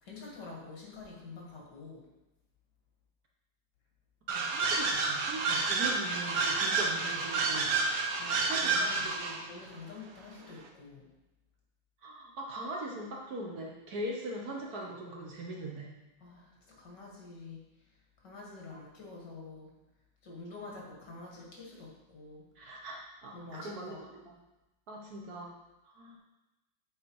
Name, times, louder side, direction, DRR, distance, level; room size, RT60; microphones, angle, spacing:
voice 1, 0.0-2.0 8.2-9.1 9.5-11.0 16.2-16.5 16.8-17.6 18.2-19.7 20.2-22.4 23.3-24.0, left 3 dB, 60° left, -2 dB, 2.3 m, -47 dB
voice 2, 4.3-7.7 8.5-9.4 12.0-15.9 22.6-24.4 24.9-25.5 25.8-26.2, right 1 dB, 55° right, -1 dB, 1.3 m, -41 dB
sound 1, 4.3-9.4, right 4 dB, 75° right, 1.5 m, -30 dB
7.8 x 4.5 x 4.7 m, 1.0 s
omnidirectional pair, 2.1 m